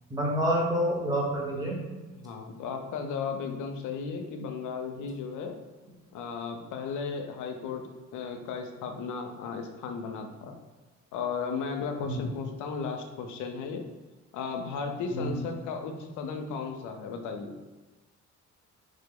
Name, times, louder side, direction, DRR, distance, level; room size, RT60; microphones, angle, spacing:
voice 1, 0.1-1.8 12.0-12.2 15.1-15.4, equal, 10° right, -4 dB, 0.9 m, -28 dB
voice 2, 2.1-5.6 6.1-7.8 8.1-10.5 11.1-13.9 14.3-17.5, left 5 dB, 80° left, 5 dB, 0.5 m, -35 dB
3.1 x 2.0 x 3.5 m, 1.2 s
cardioid pair, 90°, 30 cm